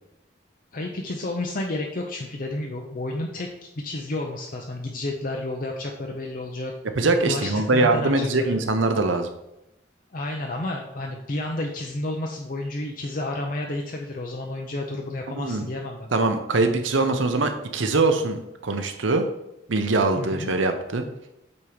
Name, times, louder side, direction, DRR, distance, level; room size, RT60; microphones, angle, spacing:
voice 1, 0.7-6.7 7.2-8.6 10.1-16.1 20.2-20.5, left 2 dB, 45° left, 1 dB, 0.6 m, -31 dB
voice 2, 7.0-9.3 15.3-15.7 16.1-19.3 19.7-21.0, right 3 dB, 85° right, 6 dB, 0.8 m, -22 dB
8.3 x 3.0 x 5.0 m, 0.88 s
head